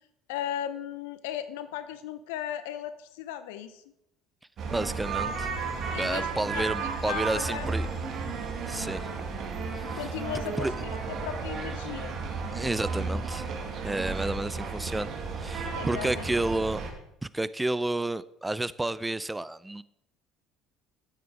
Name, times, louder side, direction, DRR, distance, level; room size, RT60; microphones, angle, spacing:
voice 1, 0.3-3.8 5.9-7.7 10.0-12.2 15.7-16.3, left 10 dB, 75° left, 12 dB, 0.6 m, -36 dB
sound 1, 4.6-16.9, right 4 dB, 50° right, 2.0 m, -33 dB
voice 2, 4.7-5.5 6.0-7.9 8.7-9.1 9.7-10.0 10.6-10.7 12.5-13.5 13.8-15.1 15.4-16.8 17.2-19.8, right 2 dB, 10° right, 17 dB, 0.5 m, -30 dB
9.8 x 8.6 x 4.6 m, 0.81 s
hypercardioid pair, 65°, 0 cm